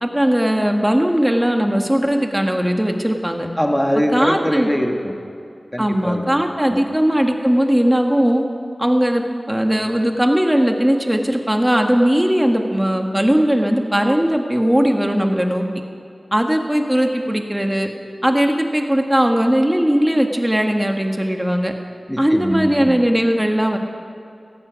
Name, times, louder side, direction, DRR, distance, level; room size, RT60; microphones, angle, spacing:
voice 1, 0.0-3.5 4.1-4.7 5.8-8.4 8.8-15.7 16.3-17.9 18.2-21.7 22.2-23.8, equal, 15° right, 3 dB, 1.7 m, -18 dB
voice 2, 3.6-5.1 5.7-6.2 6.7-6.8 22.1-23.0, equal, 10° left, 3 dB, 1.7 m, -22 dB
17.5 x 14.5 x 5.2 m, 2.4 s
wide cardioid pair, 55°, 0 cm